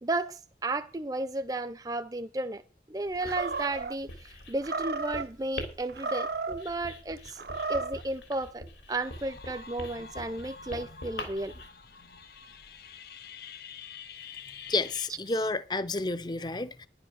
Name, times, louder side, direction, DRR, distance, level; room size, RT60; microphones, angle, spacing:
voice 1, 0.0-2.6 2.9-7.4 7.7-11.5, right 2 dB, 20° right, 0.6 m, -33 dB
Writing, 3.0-11.7, left 1 dB, 90° left, 3.2 m, -44 dB
Animal, 3.2-3.9 4.6-5.3 5.9-6.6 7.3-8.0, right 4 dB, 65° right, 0.8 m, -33 dB
sound 1, 9.0-15.1, left 6 dB, 60° left, 0.9 m, -47 dB
voice 2, 14.7-16.9, left 3 dB, 25° left, 0.6 m, -30 dB
10.5 x 10.5 x 6.3 m
head